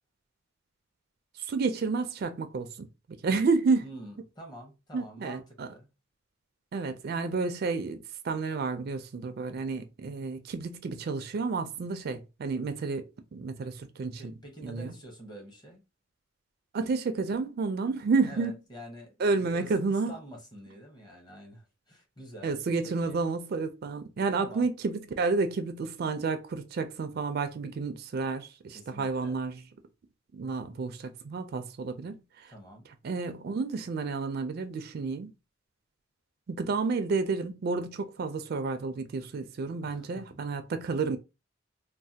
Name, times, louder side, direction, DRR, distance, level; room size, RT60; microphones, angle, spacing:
voice 1, 1.4-2.9 3.2-3.8 4.9-5.7 6.7-8.0 8.2-14.2 14.6-14.9 16.7-18.5 19.2-20.1 22.4-29.6 30.3-32.5 33.0-35.3 36.5-41.2, right 4 dB, 55° right, 0.4 m, -30 dB
voice 2, 3.8-5.9 14.2-15.8 18.3-22.5 22.8-23.2 24.4-24.7 28.7-29.4 32.5-32.9 39.8-40.4, right 1 dB, 25° left, 0.8 m, -47 dB
3.1 x 2.1 x 2.7 m
head